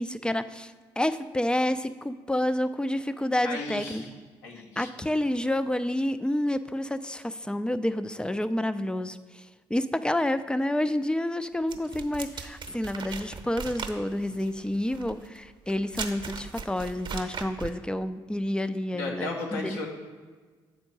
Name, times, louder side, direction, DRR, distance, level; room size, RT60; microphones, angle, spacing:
voice 1, 0.0-4.0 4.8-9.2 9.7-19.9, left 1 dB, 5° left, 12 dB, 0.4 m, -29 dB
voice 2, 3.4-4.1 4.4-4.9 18.9-19.9, left 3 dB, 80° left, -1 dB, 1.2 m, -35 dB
sound 1, 11.7-17.8, right 5 dB, 40° right, 0.9 m, -38 dB
7.2 x 4.4 x 6.1 m, 1.4 s
hypercardioid pair, 45°, 12 cm